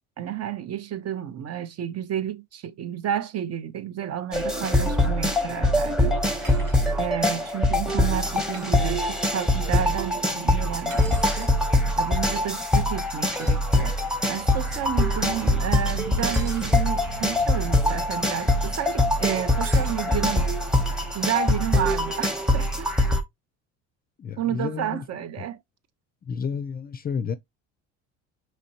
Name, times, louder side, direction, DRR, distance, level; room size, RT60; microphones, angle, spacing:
voice 1, 0.2-6.1 7.0-11.5 12.0-13.9 14.3-20.5 21.1-22.9 24.4-25.6, right 10 dB, 45° right, 0.7 m, -31 dB
sound 1, 4.3-23.2, left 1 dB, ahead, 0.9 m, -23 dB
sound 2, 6.4-6.9 8.5-8.8 10.9-11.5 13.3-13.6 16.2-16.7 19.6-20.0, right 5 dB, 70° right, 1.3 m, -42 dB
sound 3, 8.5-23.1, right 4 dB, 85° right, 1.4 m, -44 dB
voice 2, 24.2-25.0 26.3-27.4, left 6 dB, 25° left, 0.4 m, -30 dB
5.0 x 3.2 x 2.8 m
supercardioid pair, 90°, 34 cm